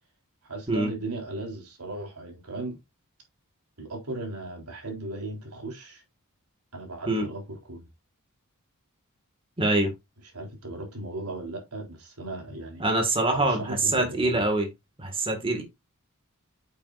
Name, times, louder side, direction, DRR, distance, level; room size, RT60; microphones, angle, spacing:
voice 1, 0.4-2.8 3.8-6.0 6.7-7.9 10.3-12.9 13.3-14.4, right 2 dB, 85° right, 3.7 m, -36 dB
voice 2, 9.6-9.9 12.8-14.7 15.0-15.6, right 2 dB, 25° right, 2.0 m, -24 dB
8.9 x 7.6 x 2.6 m
head